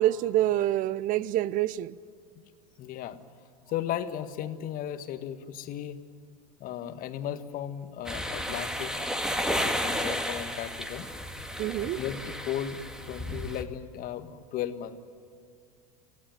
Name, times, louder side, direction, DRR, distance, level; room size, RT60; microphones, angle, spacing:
voice 1, 0.0-2.0 11.6-12.0, right 13 dB, 45° right, 0.7 m, -26 dB
voice 2, 2.8-3.2 3.7-6.0 6.6-9.0 9.6-11.1 11.8-15.0, left 10 dB, 45° left, 1.6 m, -36 dB
sound 1, 8.0-13.6, equal, 5° right, 2.0 m, -32 dB
28.0 x 16.5 x 9.1 m
figure-of-eight pair, 75°, 19 cm